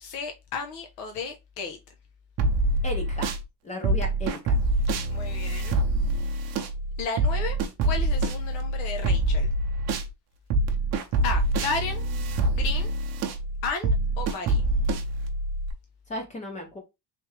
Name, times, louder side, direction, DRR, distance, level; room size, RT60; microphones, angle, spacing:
voice 1, 0.0-1.8 5.1-5.8 6.2-6.6 7.0-7.6 7.8-9.5 11.2-12.1 12.5-12.9 13.6-14.6, left 4 dB, 80° left, 0.9 m, -33 dB
sound 1, 2.4-3.4 3.8-10.1 10.5-15.7, right 2 dB, 35° right, 0.7 m, -25 dB
voice 2, 2.8-3.3 3.6-4.4 16.1-16.8, left 1 dB, 15° left, 0.6 m, -34 dB
3.4 x 3.3 x 3.2 m
cardioid pair, 175°, 43 cm